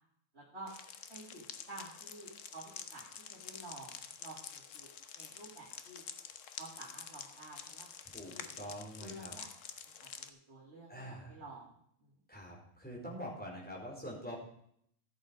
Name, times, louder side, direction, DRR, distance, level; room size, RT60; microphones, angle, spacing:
voice 1, 0.3-0.7 1.1-3.0 3.3-4.9 5.2-6.0 6.6-7.9 8.3-9.5 10.0-11.7 12.0-12.1, right 2 dB, 55° right, -5 dB, 2.9 m, -51 dB
sound 1, 0.7-10.3, left 7 dB, 75° left, 1.2 m, -48 dB
voice 2, 8.0-9.3 10.9-11.4 12.3-14.4, equal, 5° left, -4 dB, 4.3 m, -45 dB
15.0 x 8.0 x 5.1 m, 0.69 s
omnidirectional pair, 1.3 m